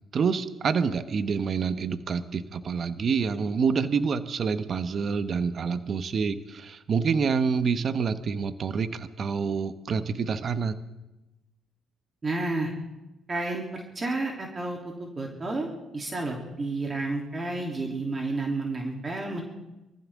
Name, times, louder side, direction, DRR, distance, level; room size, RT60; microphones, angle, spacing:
voice 1, 0.1-10.7, right 5 dB, 50° right, 11 dB, 1.0 m, -27 dB
voice 2, 12.2-12.7 13.3-19.4, right 2 dB, 30° right, 0 dB, 3.1 m, -31 dB
23.5 x 15.0 x 3.7 m, 1.0 s
supercardioid pair, 75°, 0 cm